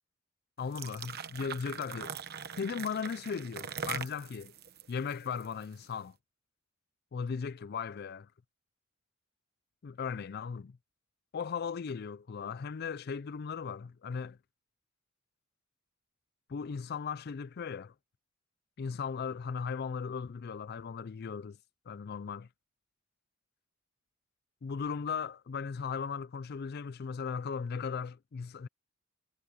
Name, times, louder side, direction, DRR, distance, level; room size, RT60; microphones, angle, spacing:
voice 1, 0.6-2.1 2.6-4.5 4.9-6.2 7.1-8.3 9.8-10.8 11.3-14.4 16.5-17.9 18.8-21.6 21.9-22.5 24.6-28.7, left 6 dB, 50° left, 0.4 m, -37 dB
sound 1, 0.6-5.9, right 7 dB, 50° right, 1.1 m, -42 dB
head